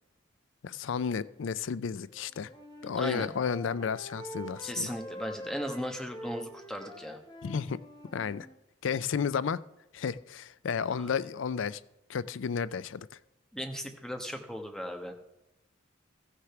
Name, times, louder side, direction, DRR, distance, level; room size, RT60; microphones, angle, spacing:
voice 1, 0.6-2.5 2.8-4.9 7.4-7.8 8.1-8.5 8.8-9.6 9.9-11.8 12.1-13.1, left 6 dB, 70° left, 17 dB, 0.4 m, -32 dB
Wind instrument woodwind instrument, 2.1-8.6, equal, 20° left, 1.3 m, -45 dB
voice 2, 3.0-3.3 4.6-7.2 10.9-11.1 13.5-15.1, equal, 5° left, 4 dB, 1.1 m, -37 dB
15.0 x 6.7 x 5.8 m, 0.88 s
head